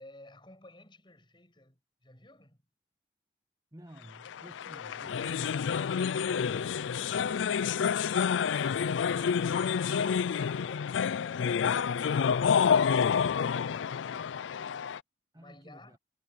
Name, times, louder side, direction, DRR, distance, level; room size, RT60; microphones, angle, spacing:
voice 1, 0.0-2.6 15.4-16.0, left 1 dB, 25° left, 7.3 m, -56 dB
voice 2, 3.7-5.6 15.3-16.0, right 1 dB, 20° right, 1.3 m, -52 dB
sound 1, 4.3-15.0, left 7 dB, 85° left, 0.4 m, -28 dB
head